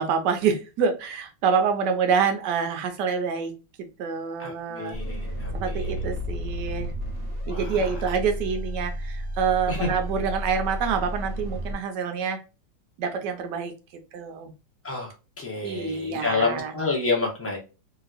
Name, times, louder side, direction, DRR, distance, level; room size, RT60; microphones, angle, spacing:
voice 1, 0.0-3.5 4.0-5.0 5.5-6.9 7.5-12.4 13.0-13.7 14.1-14.5 15.6-16.7, right 6 dB, 75° right, 6 dB, 1.3 m, -26 dB
voice 2, 4.4-5.9 7.4-8.0 9.7-9.9 14.8-17.6, left 3 dB, 10° left, -2 dB, 0.7 m, -29 dB
sound 1, 4.9-11.7, equal, 40° right, 1.4 m, -32 dB
3.2 x 2.8 x 2.4 m, 0.31 s
omnidirectional pair, 1.9 m